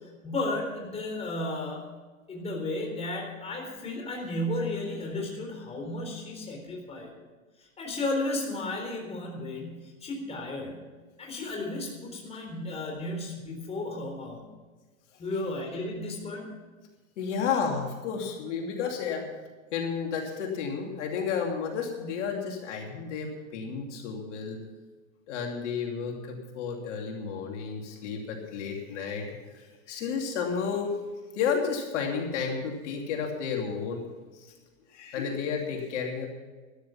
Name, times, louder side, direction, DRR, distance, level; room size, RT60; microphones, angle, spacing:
voice 1, 0.2-1.8 2.3-7.1 7.8-10.8 11.2-14.4 15.2-16.5, left 2 dB, 15° left, 0 dB, 3.9 m, -33 dB
voice 2, 17.2-19.3 19.7-24.6 25.3-31.0 31.3-34.0 34.3-34.5 34.9-36.3, left 6 dB, 60° left, 1 dB, 2.8 m, -32 dB
13.0 x 12.5 x 5.8 m, 1.3 s
hypercardioid pair, 135°, 40 cm